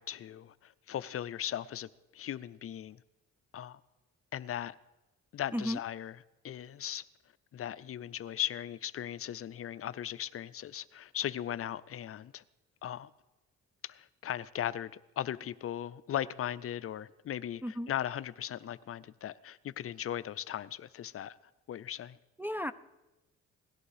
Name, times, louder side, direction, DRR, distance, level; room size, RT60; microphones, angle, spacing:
voice 1, 0.0-3.0 3.5-3.8 4.3-4.8 5.3-7.1 7.5-12.4 12.8-13.1 13.8-21.3 21.7-22.2, left 10 dB, 50° left, 0.5 m, -38 dB
voice 2, 22.4-22.7, equal, 5° right, 0.4 m, -34 dB
17.5 x 11.5 x 4.9 m
cardioid pair, 90°, 30 cm